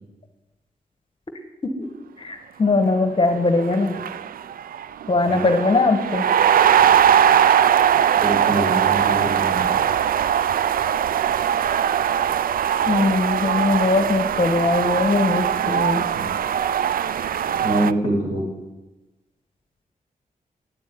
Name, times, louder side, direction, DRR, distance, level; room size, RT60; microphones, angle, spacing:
voice 1, 2.2-3.9 5.1-6.2 12.9-16.1, left 3 dB, 35° left, 6 dB, 1.3 m, -20 dB
sound 1, 3.3-3.4 3.6-17.9, right 9 dB, 75° right, 0.4 m, -20 dB
voice 2, 8.2-9.8 16.1-16.3 17.6-18.4, right 1 dB, 50° right, -3 dB, 5.8 m, -25 dB
9.7 x 8.4 x 9.4 m, 1.1 s
wide cardioid pair, 95°, 15 cm